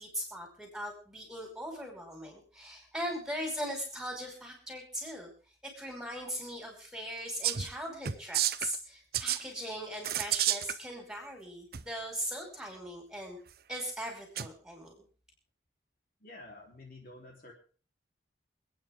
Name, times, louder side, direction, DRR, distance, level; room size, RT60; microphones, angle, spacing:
voice 1, 0.0-5.3 5.7-13.4 13.7-14.9, equal, 5° right, 1 dB, 5.3 m, -39 dB
sound 1, 7.4-7.7 8.0-8.8 9.1-9.4 10.0-10.7 11.7-11.8 14.4-14.5, right 11 dB, 55° right, 0.7 m, -30 dB
voice 2, 16.2-17.5, left 2 dB, 50° left, 0 dB, 3.7 m, -50 dB
28.0 x 9.5 x 3.7 m, 0.40 s
head